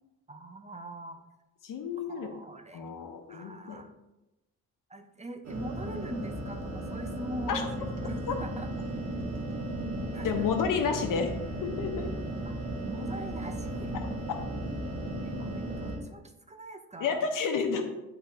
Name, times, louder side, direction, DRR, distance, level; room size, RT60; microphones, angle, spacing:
voice 1, 0.3-1.2 2.1-2.9 3.3-3.9 4.9-8.7 10.1-10.6 11.1-11.2 12.4-12.6 12.9-14.0 15.2-17.2, right 2 dB, 20° right, 6 dB, 0.6 m, -42 dB
voice 2, 1.6-2.3 2.7-3.8 7.5-7.6 10.2-11.3 11.6-12.1 17.0-17.8, left 6 dB, 75° left, 5 dB, 1.0 m, -30 dB
sound 1, 5.4-16.0, right 1 dB, 50° right, 1.6 m, -35 dB
10.5 x 3.9 x 2.8 m, 0.96 s
cardioid pair, 100°, 33 cm